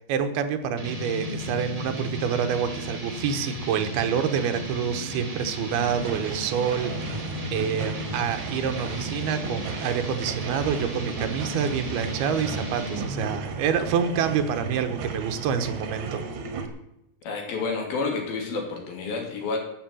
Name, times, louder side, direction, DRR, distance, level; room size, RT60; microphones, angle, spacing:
voice 1, 0.1-16.2, right 7 dB, 85° right, 8 dB, 3.0 m, -27 dB
sound 1, 0.8-13.3, equal, 20° right, 0.9 m, -35 dB
sound 2, 5.7-16.7, right 5 dB, 60° right, 2.4 m, -35 dB
voice 2, 17.2-19.6, left 4 dB, 70° left, 2 dB, 4.4 m, -29 dB
13.0 x 7.9 x 7.8 m, 0.86 s
omnidirectional pair, 4.5 m